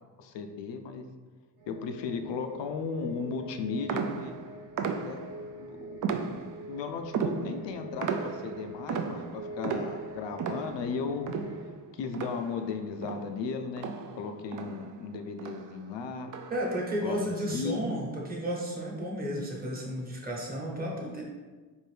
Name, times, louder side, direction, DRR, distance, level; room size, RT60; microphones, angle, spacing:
voice 1, 0.2-1.0 1.7-4.3 5.0-5.2 5.5-6.0 6.7-11.3 11.9-13.9 14.2-16.3 17.0-17.8, left 5 dB, 70° left, 6 dB, 0.5 m, -36 dB
sound 1, 1.6-11.7, right 1 dB, 75° right, 0.8 m, -45 dB
sound 2, 3.9-5.5 6.0-6.7 7.1-12.8 13.0-15.1 15.4-15.8 16.3-16.8, right 6 dB, 45° right, 0.4 m, -35 dB
voice 2, 16.5-21.2, equal, 20° right, -3 dB, 1.1 m, -33 dB
4.5 x 2.6 x 3.3 m, 1.3 s
cardioid pair, 75°, 46 cm